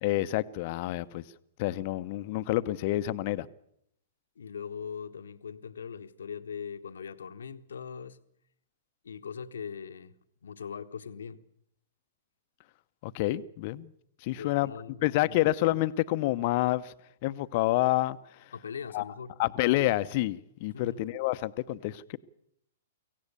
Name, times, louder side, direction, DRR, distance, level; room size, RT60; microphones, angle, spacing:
voice 1, 0.0-1.2 1.6-3.5 13.0-13.9 14.2-14.7 15.0-16.9 17.2-18.2 18.9-19.0 19.4-22.2, left 17 dB, 45° left, 0.8 m, -28 dB
voice 2, 4.4-8.2 9.0-10.1 10.4-11.4 14.3-15.0 18.5-19.4 20.7-21.0, left 7 dB, 75° left, 1.1 m, -40 dB
24.0 x 17.0 x 6.9 m
figure-of-eight pair, 110°, 0 cm